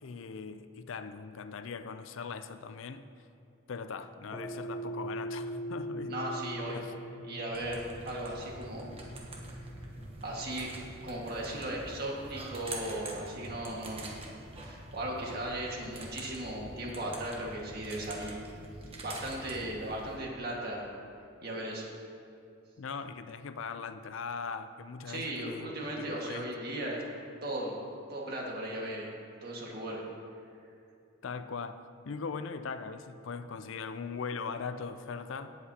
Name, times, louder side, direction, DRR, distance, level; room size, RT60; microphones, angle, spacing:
voice 1, 0.0-3.1 3.7-6.2 6.7-6.9 22.8-26.5 31.2-31.8 32.1-35.5, left 5 dB, 70° left, 11 dB, 0.5 m, -40 dB
sound 1, 4.3-12.8, equal, 10° left, 0.5 m, -42 dB
voice 2, 6.1-6.8 7.2-8.9 10.2-10.7 11.0-14.1 14.5-18.4 19.0-20.9 21.4-21.9 25.1-27.0 27.4-27.8 28.1-29.1 29.4-30.0, right 1 dB, 50° right, -2 dB, 1.8 m, -37 dB
sound 2, 7.5-20.2, right 2 dB, 30° right, 1.1 m, -45 dB
17.5 x 7.7 x 2.9 m, 2.6 s
head